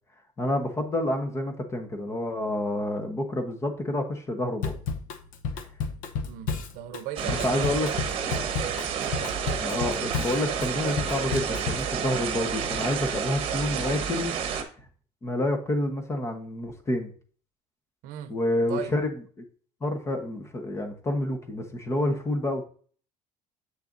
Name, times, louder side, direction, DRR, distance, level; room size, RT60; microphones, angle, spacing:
voice 1, 0.4-4.7 7.2-7.9 9.6-14.3 15.2-17.1 18.3-19.1 19.8-22.7, left 1 dB, 20° left, 1.1 m, -28 dB
Drum kit / Drum, 4.6-11.9, left 5 dB, 75° left, 0.9 m, -32 dB
voice 2, 6.2-8.0 8.7-9.4 18.0-18.4 18.7-18.9, right 12 dB, 90° right, 0.7 m, -38 dB
sound 1, 7.2-14.6, right 7 dB, 45° right, 1.1 m, -30 dB
7.4 x 6.7 x 2.6 m
cardioid pair, 160°, 14 cm